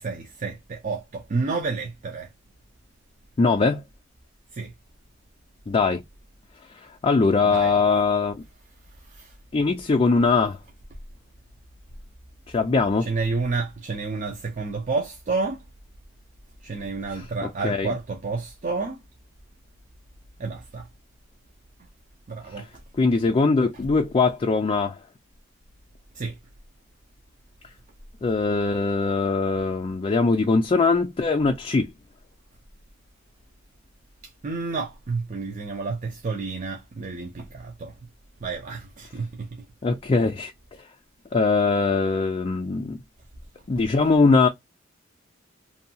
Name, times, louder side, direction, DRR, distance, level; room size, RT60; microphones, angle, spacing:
voice 1, 0.0-2.3 4.5-4.7 7.4-7.7 9.1-9.3 13.0-15.6 16.6-19.0 20.4-20.9 22.3-22.7 26.1-26.4 34.4-37.9 38.4-39.6, right 4 dB, 40° right, 0.5 m, -30 dB
voice 2, 3.4-3.8 5.7-6.0 7.0-8.4 9.5-10.6 12.5-13.1 17.1-17.9 22.5-22.7 23.0-25.0 28.2-31.9 39.8-40.8 41.3-43.0 43.7-44.5, left 4 dB, 30° left, 0.4 m, -21 dB
2.6 x 2.2 x 2.6 m
head